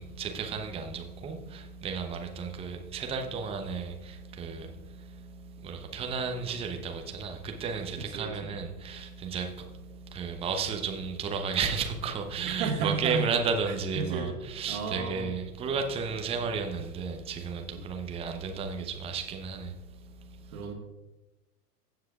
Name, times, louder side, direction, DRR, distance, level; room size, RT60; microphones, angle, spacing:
voice 1, 0.0-19.7, right 5 dB, 10° right, 0.8 m, -33 dB
voice 2, 8.0-8.5 12.6-13.3 13.7-14.3 14.7-15.3 17.8-17.9 20.5-20.7, right 5 dB, 60° right, 1.9 m, -33 dB
15.5 x 7.6 x 2.4 m
figure-of-eight pair, 110°, 47 cm